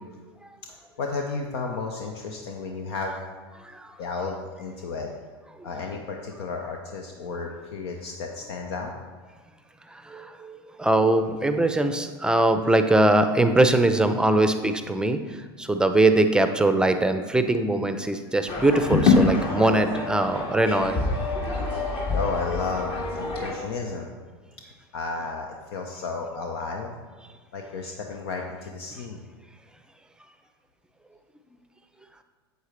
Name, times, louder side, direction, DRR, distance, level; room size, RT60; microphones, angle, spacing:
voice 1, 1.0-3.2 4.0-5.1 5.6-8.9 22.1-24.1 24.9-26.9 27.5-29.2, left 4 dB, 70° left, 2 dB, 0.8 m, -32 dB
voice 2, 3.6-4.0 5.6-5.7 9.9-21.0, right 2 dB, 5° right, 8 dB, 0.6 m, -22 dB
sound 1, 18.5-23.6, left 3 dB, 45° left, 1.8 m, -25 dB
8.1 x 7.9 x 3.3 m, 1.5 s
hypercardioid pair, 90°, 14 cm